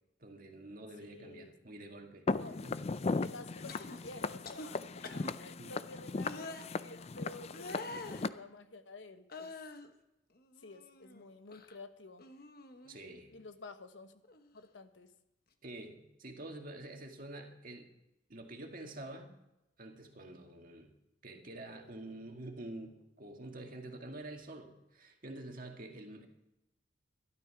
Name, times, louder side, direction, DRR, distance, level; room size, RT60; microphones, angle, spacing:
voice 1, 0.2-2.3 2.6-2.8 5.6-5.7 12.8-13.4 15.6-17.9 18.3-19.3 19.8-20.9 21.2-26.3, right 1 dB, 50° right, 3 dB, 2.0 m, -47 dB
voice 2, 1.0-1.5 1.8-1.9 2.4-2.6 3.2-9.5 10.6-12.2 13.3-14.1 14.5-15.1, left 2 dB, 90° left, 9 dB, 1.2 m, -51 dB
Walk footsteps, 2.3-8.3, left 3 dB, 35° left, 0.4 m, -37 dB
sound 1, 3.7-4.0 4.4-4.7 5.0-5.3 6.2-6.6 7.5-8.2 9.3-9.9 10.4-11.2 11.5-11.8 12.2-13.0 14.2-14.4, left 2 dB, 55° left, 1.2 m, -46 dB
13.0 x 12.0 x 5.9 m, 0.92 s
head